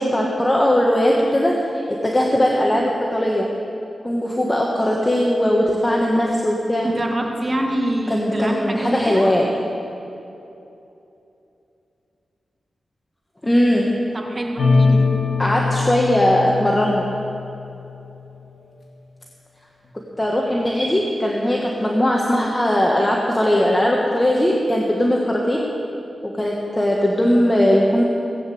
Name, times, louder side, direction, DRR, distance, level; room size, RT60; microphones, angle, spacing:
voice 1, 0.0-1.6 1.9-3.5 4.0-6.9 8.1-9.5 13.4-14.0 15.4-17.1 20.2-25.6 26.2-28.0, left 1 dB, 15° left, -2 dB, 1.4 m, -19 dB
voice 2, 6.8-9.3 14.1-15.0, right 1 dB, 35° right, 1 dB, 1.7 m, -25 dB
sound 1, 14.6-18.0, left 4 dB, 50° left, 2.4 m, -21 dB
17.0 x 8.9 x 7.7 m, 2.9 s
wide cardioid pair, 105°, 0 cm